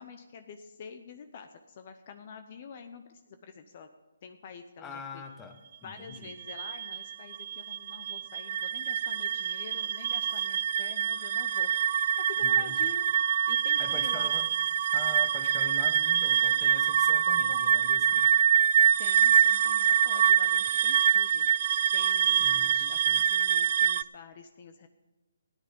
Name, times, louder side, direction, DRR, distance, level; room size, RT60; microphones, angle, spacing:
voice 1, 0.0-3.9 4.2-5.2 5.8-13.1 13.5-14.3 17.5-18.0 19.0-24.9, left 6 dB, 40° left, 8 dB, 0.8 m, -47 dB
voice 2, 4.8-6.3 12.4-12.8 13.8-14.5 14.9-18.3 22.4-23.2, left 4 dB, 15° left, 5 dB, 1.2 m, -44 dB
sound 1, 6.1-24.0, right 9 dB, 40° right, 0.3 m, -25 dB
14.0 x 10.0 x 5.3 m, 1.1 s
hypercardioid pair, 155°, 0 cm